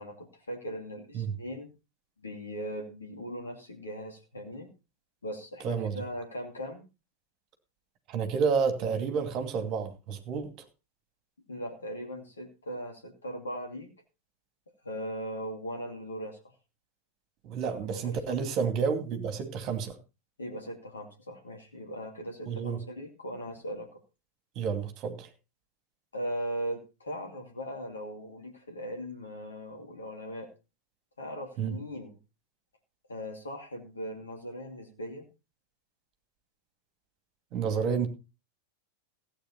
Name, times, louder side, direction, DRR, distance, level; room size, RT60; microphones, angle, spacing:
voice 1, 0.0-1.7 2.2-4.7 5.2-6.8 11.5-13.9 14.8-16.4 17.6-17.9 20.4-24.0 26.1-30.5 31.2-32.2 33.1-35.2, equal, 75° left, 3 dB, 2.6 m, -39 dB
voice 2, 5.6-5.9 8.1-10.5 17.4-20.0 22.5-22.8 24.6-25.3 31.6-31.7 37.5-38.1, right 6 dB, 40° right, 8 dB, 2.5 m, -30 dB
16.0 x 8.8 x 4.2 m, 0.30 s
figure-of-eight pair, 90°, 0 cm